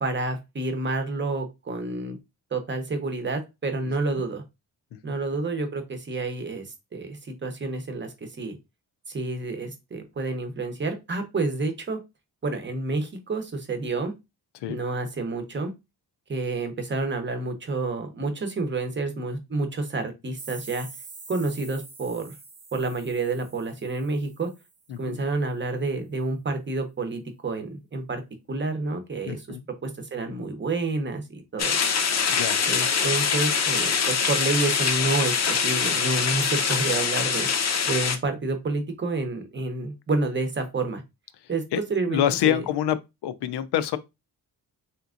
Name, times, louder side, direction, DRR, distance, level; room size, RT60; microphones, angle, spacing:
voice 1, 0.0-2.2 2.5-4.4 5.0-8.6 9.1-12.0 12.4-14.1 14.7-15.7 16.3-20.9 21.3-22.3 22.7-24.5 25.0-28.2 28.5-29.6 29.8-31.8 32.7-37.5 37.9-41.0 41.5-41.6 41.9-42.6, right 3 dB, 30° right, 0.8 m, -29 dB
sound 1, 20.4-25.0, right 4 dB, 85° right, 1.2 m, -46 dB
voice 2, 29.2-29.6 32.3-32.6 41.7-43.0 43.2-44.0, left 11 dB, 90° left, 0.5 m, -26 dB
sound 2, 31.6-38.2, left 6 dB, 45° left, 0.6 m, -24 dB
3.5 x 2.8 x 2.4 m
wide cardioid pair, 125°, 39 cm